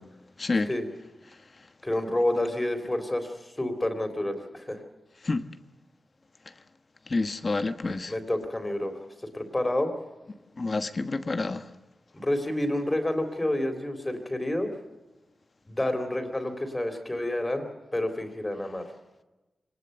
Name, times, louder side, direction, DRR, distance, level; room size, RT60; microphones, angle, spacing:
voice 1, 0.4-0.7 5.2-5.4 7.1-8.1 10.6-11.7, left 3 dB, 40° left, 1.2 m, -28 dB
voice 2, 1.8-4.8 8.1-9.0 9.3-9.9 12.1-14.7 15.7-18.9, left 1 dB, 20° left, 3.7 m, -29 dB
24.0 x 19.5 x 6.9 m
wide cardioid pair, 95°, 0 cm